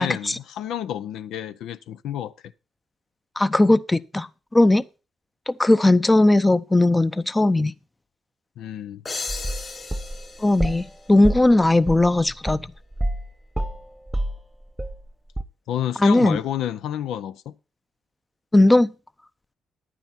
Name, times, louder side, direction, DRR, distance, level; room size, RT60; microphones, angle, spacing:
voice 1, 0.0-2.3 8.6-9.0 15.7-17.5, left 10 dB, 70° left, 0.6 m, -30 dB
voice 2, 3.4-4.3 4.5-4.8 5.5-7.7 10.4-12.6 16.0-16.4 18.5-18.9, left 2 dB, 20° left, 0.7 m, -18 dB
sound 1, 9.1-11.7, left 3 dB, 35° left, 5.2 m, -36 dB
sound 2, 9.3-10.9 11.2-13.3 13.5-15.1 15.4-15.5, right 1 dB, 10° right, 1.1 m, -28 dB
11.0 x 9.1 x 4.3 m
hypercardioid pair, 45°, 0 cm